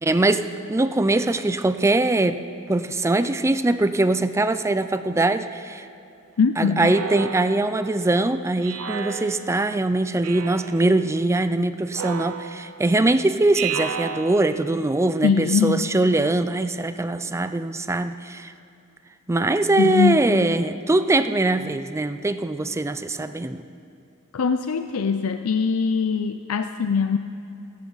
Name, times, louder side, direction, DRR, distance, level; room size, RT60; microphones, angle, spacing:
voice 1, 0.0-2.4 2.7-5.9 6.6-18.5 19.3-23.6, right 2 dB, 15° right, 11 dB, 0.4 m, -22 dB
voice 2, 6.4-7.0 15.2-15.9 19.8-20.2 24.3-27.2, left 5 dB, 90° left, 8 dB, 0.5 m, -22 dB
Speech synthesizer, 6.8-7.9 8.6-9.6 10.2-10.9 11.9-12.8 13.5-14.7, right 7 dB, 90° right, 0.9 m, -33 dB
27.5 x 10.5 x 4.0 m, 2.7 s
head